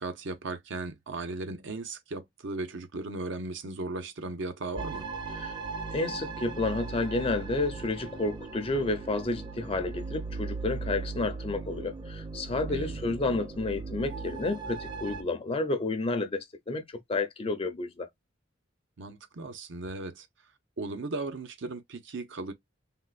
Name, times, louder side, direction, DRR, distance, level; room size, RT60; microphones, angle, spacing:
voice 1, 0.0-5.1 12.7-13.1 19.0-20.3 20.8-22.5, right 2 dB, 70° right, 0.7 m, -37 dB
sound 1, 4.8-15.2, right 4 dB, 25° right, 0.6 m, -38 dB
voice 2, 5.9-18.1, left 2 dB, 30° left, 0.6 m, -31 dB
3.6 x 2.2 x 2.4 m
head